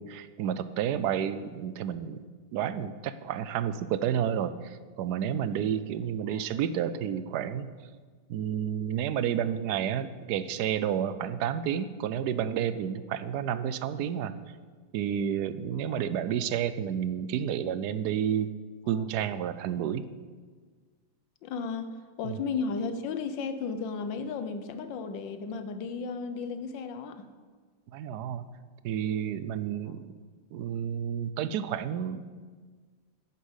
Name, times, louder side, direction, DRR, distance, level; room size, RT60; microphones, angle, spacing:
voice 1, 0.0-2.2 2.5-7.7 8.3-14.3 14.9-18.5 18.9-20.0 22.2-22.4 27.9-28.5 28.8-30.1 30.5-32.2, right 9 dB, 70° right, 13 dB, 1.0 m, -30 dB
voice 2, 21.4-27.3, left 5 dB, 75° left, 10 dB, 1.5 m, -34 dB
10.5 x 7.3 x 8.0 m, 1.5 s
omnidirectional pair, 2.0 m